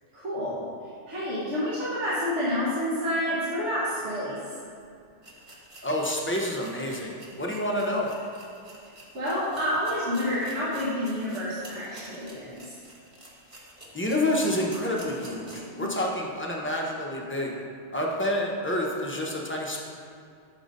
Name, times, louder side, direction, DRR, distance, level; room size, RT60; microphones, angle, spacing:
voice 1, 0.1-0.6 1.1-4.4 8.7-8.8 9.1-12.7 15.7-15.9, equal, 75° right, -9 dB, 1.5 m, -29 dB
sound 1, 4.7-4.8 5.2-15.8 16.2-16.3 16.8-16.9, right 1 dB, 30° right, 1.0 m, -48 dB
voice 2, 5.8-8.1 13.9-17.5 17.9-19.8, left 1 dB, 15° left, -2 dB, 0.5 m, -28 dB
6.4 x 3.9 x 5.2 m, 2.4 s
omnidirectional pair, 1.2 m